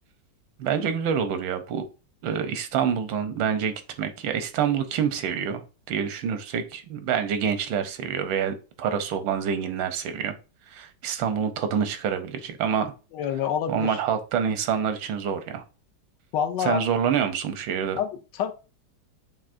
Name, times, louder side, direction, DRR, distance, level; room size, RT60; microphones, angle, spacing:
voice 1, 0.6-1.8 2.2-10.3 10.7-12.9 13.7-15.6 16.6-18.0, right 7 dB, 85° right, 1.4 m, -27 dB
voice 2, 13.1-14.0 16.3-16.8 18.0-18.5, left 8 dB, 75° left, 1.2 m, -27 dB
7.1 x 2.7 x 2.5 m
omnidirectional pair, 2.0 m